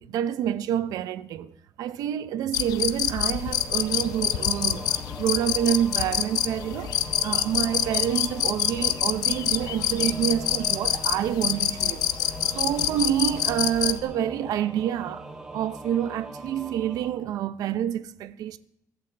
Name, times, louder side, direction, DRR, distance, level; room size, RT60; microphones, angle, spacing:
voice 1, 0.1-1.5 1.8-4.9 5.2-6.9 7.2-12.1 12.5-15.2 15.5-18.6, right 10 dB, 70° right, 0.6 m, -27 dB
sound 1, 2.5-14.0, left 11 dB, 75° left, 0.7 m, -26 dB
Singing / Musical instrument, 3.3-17.1, right 2 dB, 15° right, 3.3 m, -41 dB
22.5 x 12.0 x 3.3 m
cardioid pair, 130°, 7 cm